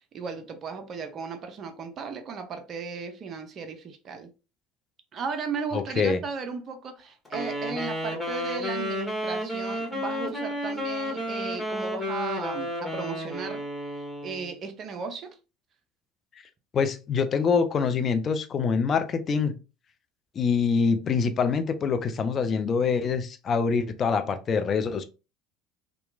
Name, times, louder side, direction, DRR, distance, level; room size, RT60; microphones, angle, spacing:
voice 1, 0.1-4.3 5.1-13.6 14.2-15.4, right 5 dB, 40° right, 0.5 m, -35 dB
voice 2, 5.7-6.2 16.7-19.6 20.4-25.0, left 5 dB, 40° left, 0.4 m, -25 dB
Wind instrument woodwind instrument, 7.2-14.5, equal, 10° left, 1.4 m, -32 dB
2.9 x 2.2 x 2.4 m
hypercardioid pair, 70°, 0 cm